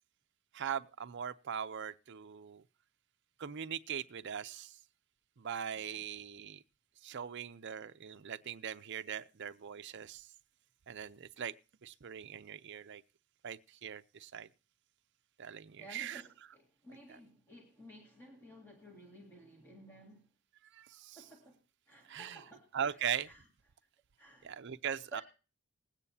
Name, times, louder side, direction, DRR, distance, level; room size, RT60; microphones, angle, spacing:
voice 1, 0.5-2.6 3.4-4.8 5.4-6.6 7.0-10.3 10.9-11.5 11.8-13.0 13.4-14.5 15.4-16.2 17.1-17.2 20.7-21.2 22.1-22.4 22.7-23.3 24.4-25.2, right 8 dB, 55° right, 0.5 m, -40 dB
voice 2, 15.8-20.3 21.2-21.6 21.9-23.4 24.2-24.5 24.9-25.2, right 1 dB, 10° left, 2.0 m, -55 dB
20.5 x 9.0 x 2.7 m
head